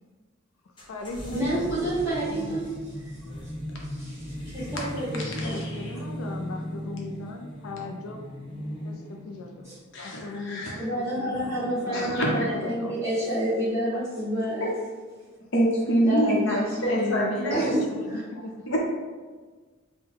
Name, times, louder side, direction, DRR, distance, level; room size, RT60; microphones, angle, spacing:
voice 1, 0.6-1.8 2.2-3.3 5.5-9.7 10.0-12.9 16.5-16.6 17.0-18.5, left 2 dB, 80° left, 3 dB, 0.4 m, -38 dB
sound 1, 0.8-12.9, equal, 25° left, 0.8 m, -38 dB
voice 2, 1.3-2.7 3.0-3.4 3.8-5.6 9.6-9.7 10.8-14.7 16.0-17.2 17.5-18.2, right 1 dB, 15° right, -9 dB, 1.4 m, -29 dB
voice 3, 5.2-5.7 9.9-10.8 11.9-12.5 15.5-17.7 18.7-18.8, equal, 60° left, -3 dB, 0.8 m, -26 dB
3.8 x 2.2 x 4.4 m, 1.4 s
head